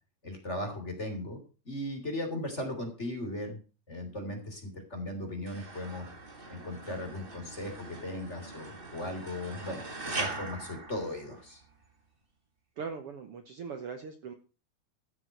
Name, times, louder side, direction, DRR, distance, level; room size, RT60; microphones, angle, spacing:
voice 1, 0.2-1.4 1.6-3.6 3.9-6.1 6.5-11.6, left 1 dB, 20° left, 4 dB, 3.1 m, -37 dB
sound 1, 5.5-11.7, right 3 dB, 45° right, 0.7 m, -41 dB
voice 2, 12.8-14.3, right 5 dB, 80° right, 7 dB, 1.3 m, -40 dB
14.0 x 7.3 x 6.5 m, 0.34 s
omnidirectional pair, 4.4 m